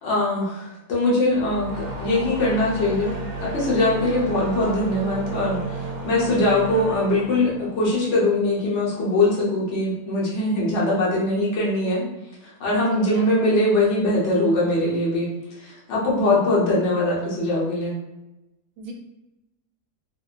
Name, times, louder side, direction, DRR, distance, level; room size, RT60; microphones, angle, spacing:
voice 1, 0.0-12.1 12.4-15.3 15.6-17.9, left 1 dB, 55° left, -6 dB, 1.2 m, -22 dB
sound 1, 1.2-8.6, right 2 dB, 50° right, 0.5 m, -33 dB
voice 2, 12.9-13.5 16.2-16.3 18.8-18.9, right 4 dB, 70° right, 2 dB, 0.9 m, -37 dB
3.7 x 2.1 x 2.4 m, 0.96 s
omnidirectional pair, 1.6 m